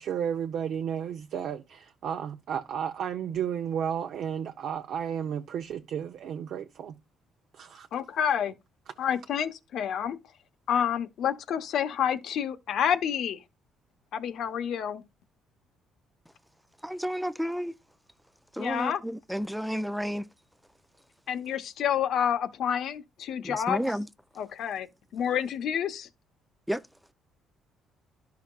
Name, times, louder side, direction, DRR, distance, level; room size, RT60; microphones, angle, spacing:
voice 1, 0.0-6.9 7.5-7.9, right 8 dB, 65° right, 0.7 m, -33 dB
voice 2, 7.9-8.5 9.0-10.2 10.7-13.4 14.1-15.0 18.6-19.0 21.3-23.8 24.4-24.9 25.1-26.1, left 9 dB, 65° left, 1.0 m, -28 dB
voice 3, 16.8-17.7 18.5-20.3 23.4-24.1 26.7-26.8, equal, ahead, 0.4 m, -31 dB
12.0 x 5.8 x 2.4 m
cardioid pair, 115°, 0 cm